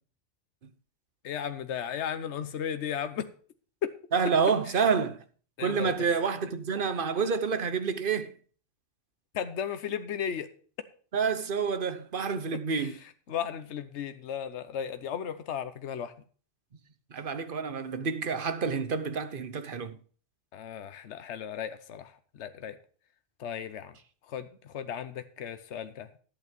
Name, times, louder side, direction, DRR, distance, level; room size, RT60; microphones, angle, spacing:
voice 1, 1.2-3.3 3.8-3.9 4.7-4.8 5.6-6.0 9.3-10.5 12.7-16.1 20.5-22.8 23.4-24.0 24.3-26.1, left 8 dB, 75° left, 1.1 m, -35 dB
voice 2, 4.1-5.2 5.6-8.3 11.1-13.0 17.1-20.0, right 5 dB, 50° right, 1.1 m, -28 dB
11.0 x 8.7 x 5.2 m
omnidirectional pair, 1.2 m